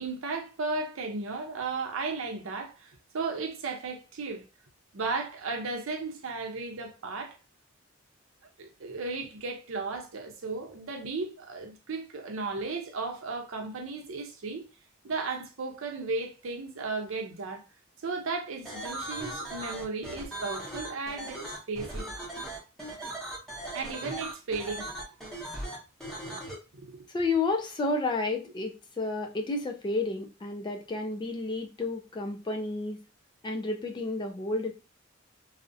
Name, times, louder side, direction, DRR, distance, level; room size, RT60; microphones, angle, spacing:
voice 1, 0.0-4.4 4.9-7.4 8.6-14.7 15.0-17.6 18.0-22.1 23.7-25.0 25.3-25.5 26.0-26.5 26.7-27.1, right 3 dB, 75° right, 0.6 m, -35 dB
sound 1, 18.7-26.5, right 1 dB, 5° left, 0.8 m, -38 dB
voice 2, 27.1-33.0 33.4-34.7, left 3 dB, 20° left, 0.3 m, -31 dB
2.4 x 2.0 x 2.6 m
head